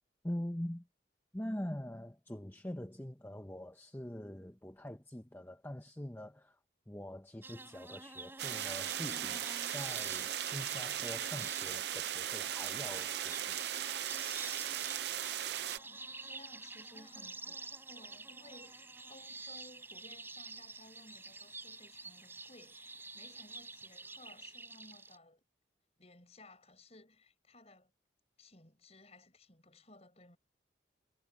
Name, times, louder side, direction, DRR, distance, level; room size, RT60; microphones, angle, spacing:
voice 1, 0.2-0.9 1.3-6.6 6.9-13.6, left 1 dB, 10° left, 1.0 m, -44 dB
sound 1, 7.4-25.2, right 3 dB, 10° right, 4.8 m, -49 dB
sound 2, 8.4-15.8, right 11 dB, 60° right, 0.5 m, -38 dB
voice 2, 15.6-25.4 26.0-27.9 28.4-30.4, left 2 dB, 35° left, 6.1 m, -59 dB
head